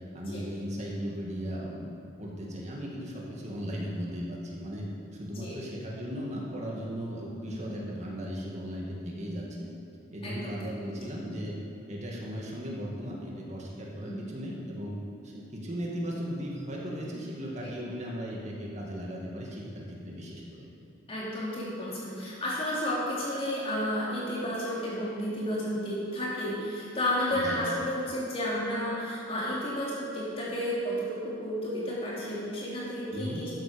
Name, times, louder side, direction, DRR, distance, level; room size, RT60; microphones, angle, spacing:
voice 1, 0.1-1.9 2.2-9.7 10.1-11.6 11.9-20.7 27.3-27.6 33.1-33.5, equal, 35° right, -3 dB, 2.2 m, -37 dB
voice 2, 10.2-10.6 14.0-14.2 17.6-17.7 21.1-33.5, equal, 30° left, -7 dB, 3.5 m, -32 dB
13.0 x 9.4 x 5.4 m, 2.5 s
head